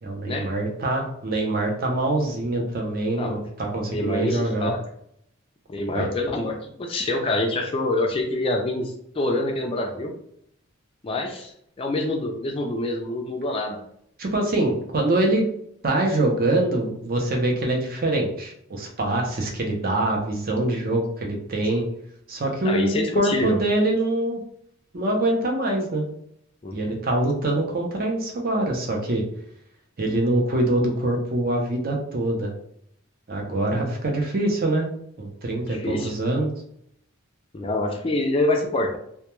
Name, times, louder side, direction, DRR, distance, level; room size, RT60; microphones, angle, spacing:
voice 1, 0.0-4.7 5.9-6.1 14.2-15.5 15.8-21.9 22.3-24.4 24.9-26.1 26.7-29.2 30.0-32.5 33.3-34.9 35.2-36.5, right 1 dB, 45° right, 1 dB, 0.5 m, -24 dB
voice 2, 3.9-4.8 5.7-10.1 11.0-11.5 11.8-13.8 22.6-23.6 26.6-26.9 35.7-36.1 37.5-39.0, left 2 dB, 25° left, 2 dB, 0.3 m, -26 dB
2.2 x 2.2 x 2.9 m, 0.71 s
head